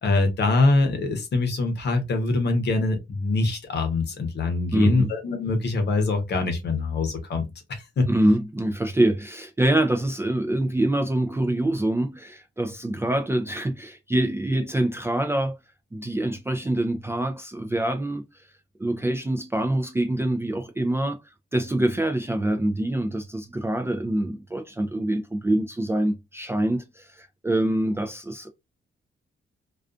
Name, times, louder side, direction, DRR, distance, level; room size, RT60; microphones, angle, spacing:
voice 1, 0.0-7.4 7.7-8.1, left 3 dB, 60° left, 0.8 m, -24 dB
voice 2, 4.7-5.1 8.1-15.6 15.9-18.2 18.8-21.2 21.5-28.5, right 1 dB, 15° right, 0.3 m, -25 dB
2.3 x 2.3 x 2.4 m
cardioid pair, 120°, 20 cm